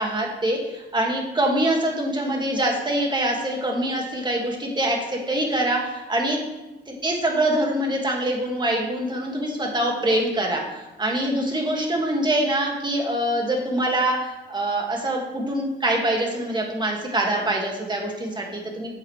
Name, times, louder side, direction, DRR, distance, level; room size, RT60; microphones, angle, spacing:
voice 1, 0.0-6.4 6.9-18.9, right 1 dB, 20° right, 0 dB, 2.0 m, -24 dB
8.8 x 7.9 x 3.3 m, 1.1 s
cardioid pair, 90°, 20 cm